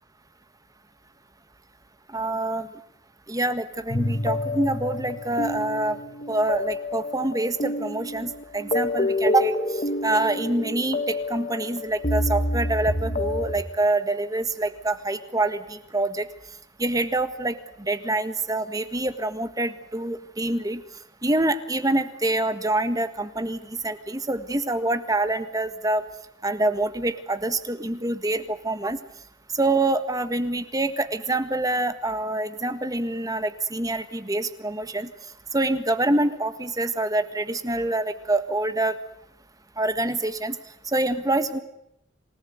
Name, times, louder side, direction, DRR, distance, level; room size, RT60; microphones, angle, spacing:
voice 1, 2.1-2.7 3.3-6.0 6.3-16.3 16.8-20.8 21.2-26.0 26.4-29.0 29.5-35.1 35.5-39.0 39.8-40.6 40.8-41.6, right 2 dB, 20° right, 11 dB, 1.6 m, -26 dB
sound 1, 3.9-13.6, left 1 dB, 35° left, 1.6 m, -28 dB
27.5 x 18.5 x 9.4 m, 0.79 s
head